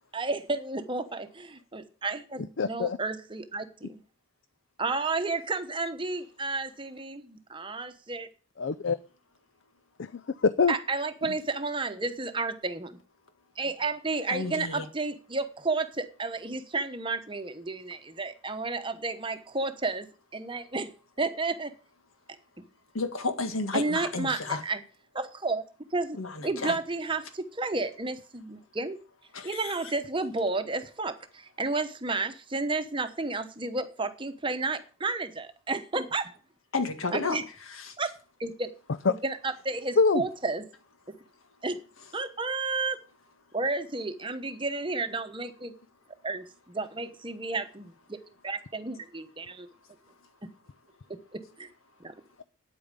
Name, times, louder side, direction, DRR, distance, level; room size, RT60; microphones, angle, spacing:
voice 1, 0.1-4.0 4.8-8.3 10.7-12.9 13.6-20.1 20.3-20.9 21.2-21.7 23.7-24.8 25.1-25.6 25.9-26.2 26.4-29.0 29.4-31.2 31.6-36.3 37.1-37.4 38.0-38.1 38.4-38.7 39.1-40.7 41.6-41.8 42.1-43.0 43.5-45.7 46.2-46.4 46.7-48.2 48.4-49.7 51.6-51.7 52.0-52.1, right 3 dB, 25° right, 1.0 m, -31 dB
voice 2, 2.6-3.0 8.6-9.0 10.0-10.7 39.0-39.1 40.0-40.3, left 4 dB, 60° left, 0.5 m, -24 dB
voice 3, 14.3-14.9 22.9-24.6 26.2-26.8 29.3-29.8 36.7-37.4 37.8-38.0, left 3 dB, 90° left, 1.8 m, -31 dB
9.2 x 8.7 x 6.8 m
head